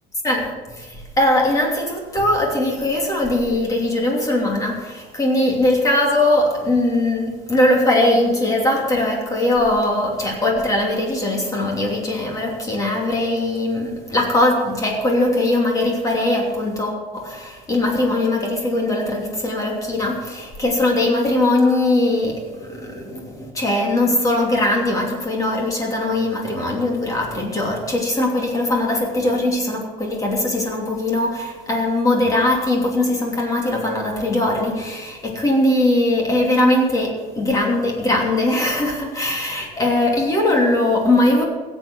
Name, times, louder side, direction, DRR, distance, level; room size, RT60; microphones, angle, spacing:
voice 1, 0.2-41.4, left 1 dB, 20° left, 0 dB, 2.9 m, -20 dB
16.5 x 8.1 x 6.2 m, 1.3 s
cardioid pair, 160°, 18 cm